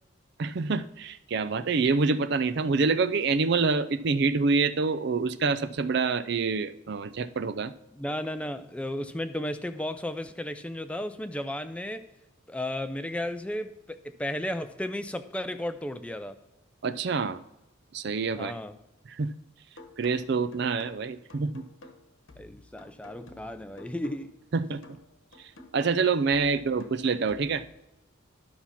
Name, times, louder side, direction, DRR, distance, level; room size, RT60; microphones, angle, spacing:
voice 1, 0.4-7.7 16.8-17.4 17.9-18.5 19.1-19.3 20.0-21.6 24.5-24.8 25.7-27.6, right 4 dB, 55° right, 13 dB, 0.4 m, -26 dB
voice 2, 7.9-12.1 12.5-16.4 18.4-18.8 22.4-24.3, left 1 dB, 5° left, 9 dB, 0.4 m, -34 dB
sound 1, 19.8-27.8, left 2 dB, 70° left, 1.2 m, -52 dB
12.0 x 5.8 x 5.7 m, 0.97 s
head